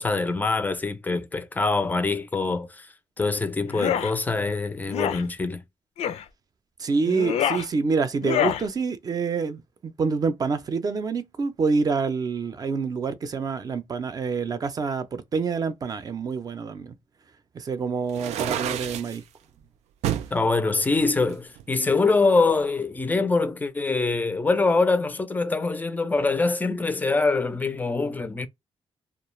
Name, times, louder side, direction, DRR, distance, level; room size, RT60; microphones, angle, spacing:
voice 1, 0.0-2.9 3.2-5.6 20.3-28.5, left 3 dB, 15° left, 0.4 m, -24 dB
sound 1, 3.7-4.1 4.9-5.2 6.0-6.2 7.0-7.7 8.2-8.6, left 10 dB, 75° left, 0.4 m, -26 dB
voice 2, 6.8-16.9 17.5-19.2, right 4 dB, 35° right, 0.5 m, -27 dB
sound 2, 18.1-19.2 20.0-20.3 20.9-22.0, right 10 dB, 90° right, 0.4 m, -30 dB
2.3 x 2.1 x 3.1 m
cardioid pair, 130°, 11 cm